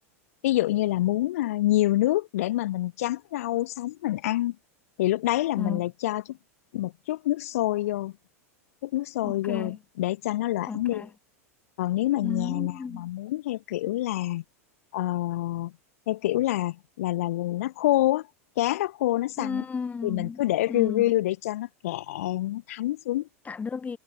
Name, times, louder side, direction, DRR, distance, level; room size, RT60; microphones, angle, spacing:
voice 1, 0.4-4.6 5.0-6.4 6.7-8.1 8.8-11.0 11.8-14.4 14.9-15.7 16.1-18.3 18.6-19.6 20.0-23.3, left 15 dB, 75° left, 0.7 m, -27 dB
voice 2, 9.2-9.8 10.7-11.1 12.2-13.1 19.4-20.4 20.7-21.1 23.4-24.0, left 5 dB, 20° left, 4.5 m, -33 dB
hypercardioid pair, 105°, 8 cm